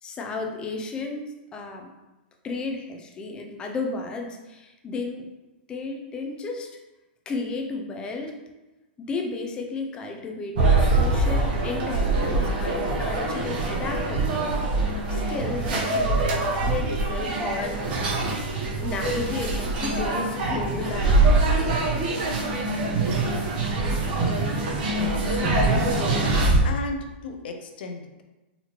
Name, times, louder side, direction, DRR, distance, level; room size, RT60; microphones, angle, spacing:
voice 1, 0.0-1.9 2.4-5.3 5.7-6.7 7.3-8.3 9.0-14.4 15.1-17.8 18.6-21.9, left 3 dB, 15° left, 3 dB, 0.4 m, -33 dB
sound 1, 10.5-26.6, right 2 dB, 60° right, 1.0 m, -24 dB
voice 2, 25.0-26.2 26.6-28.2, left 3 dB, 65° left, 5 dB, 0.6 m, -34 dB
4.1 x 2.8 x 2.9 m, 1.1 s
hypercardioid pair, 155°, 6 cm